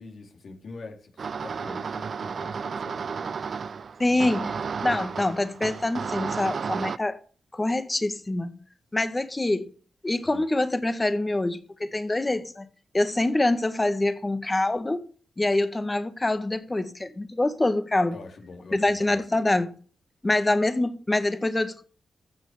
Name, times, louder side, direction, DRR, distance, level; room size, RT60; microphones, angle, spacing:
voice 1, 0.0-3.3 4.0-4.6 10.2-10.4 18.1-19.2, left 3 dB, 70° left, 3.6 m, -44 dB
sound 1, 1.2-7.0, right 5 dB, 65° right, 0.5 m, -32 dB
voice 2, 4.0-4.5 4.8-7.2 7.5-8.5 8.9-9.7 10.0-12.7 12.9-15.0 15.4-18.2 18.7-19.8 20.2-21.8, left 2 dB, 25° left, 1.7 m, -25 dB
15.0 x 6.5 x 6.8 m
cardioid pair, 60°, 0 cm